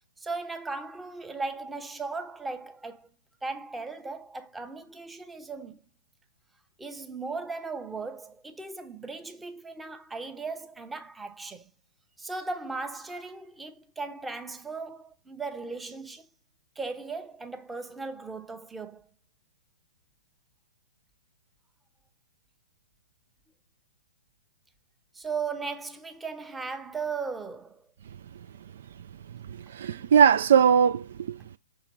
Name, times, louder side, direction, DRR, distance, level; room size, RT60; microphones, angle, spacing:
voice 1, 0.2-3.1 3.4-5.8 6.8-11.7 12.2-16.3 16.8-19.1 25.1-27.8 30.0-30.1 31.4-31.5, right 4 dB, 5° right, 0.8 m, -37 dB
voice 2, 29.3-31.6, right 7 dB, 55° right, 0.3 m, -21 dB
5.9 x 3.8 x 4.5 m
figure-of-eight pair, 120°, 0 cm